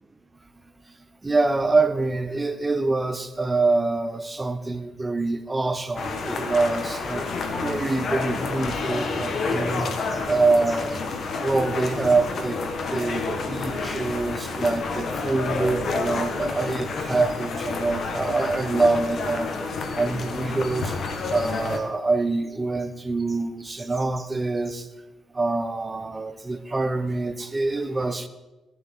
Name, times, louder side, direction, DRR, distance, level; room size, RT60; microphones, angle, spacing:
voice 1, 1.2-7.2 7.6-11.0 11.4-12.6 12.9-19.5 19.9-21.0 21.3-24.9 25.3-28.3, right 3 dB, 20° right, 10 dB, 1.1 m, -25 dB
sound 1, 6.0-21.8, left 4 dB, 55° left, 1.7 m, -29 dB
17.5 x 11.0 x 3.9 m, 1.0 s
cardioid pair, 90°, 0 cm